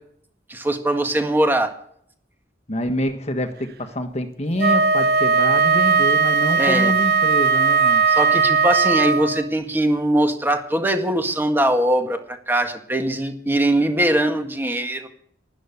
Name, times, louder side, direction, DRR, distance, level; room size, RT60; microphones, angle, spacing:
voice 1, 0.5-1.7 6.6-6.9 8.1-15.1, right 1 dB, 10° right, 1.8 m, -21 dB
voice 2, 2.7-8.0, left 1 dB, 35° left, 1.4 m, -26 dB
Wind instrument woodwind instrument, 4.6-9.5, right 5 dB, 55° right, 0.8 m, -18 dB
12.5 x 11.0 x 8.3 m
head